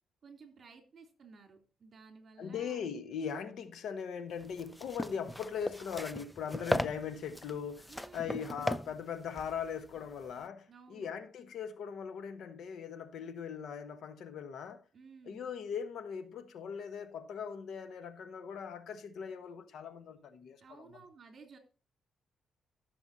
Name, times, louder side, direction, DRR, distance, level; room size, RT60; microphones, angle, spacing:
voice 1, 0.2-2.9 7.9-8.5 10.7-11.1 14.9-15.5 20.6-21.6, right 4 dB, 45° right, 3.1 m, -55 dB
voice 2, 2.4-14.8 15.2-20.8, left 7 dB, 70° left, 1.2 m, -40 dB
sound 1, 4.4-10.4, left 1 dB, 5° left, 0.4 m, -38 dB
14.5 x 7.0 x 2.8 m
cardioid pair, 130°, 0 cm